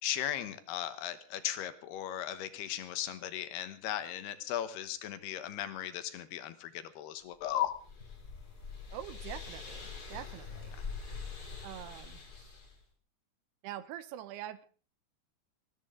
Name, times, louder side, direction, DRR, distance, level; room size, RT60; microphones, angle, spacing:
voice 1, 0.0-7.7, left 11 dB, 75° left, 3.1 m, -37 dB
sound 1, 7.4-12.8, left 5 dB, 25° left, 3.5 m, -44 dB
voice 2, 8.9-10.8 11.6-12.2 13.6-14.7, right 12 dB, 80° right, 2.9 m, -44 dB
20.5 x 15.0 x 3.8 m
omnidirectional pair, 4.7 m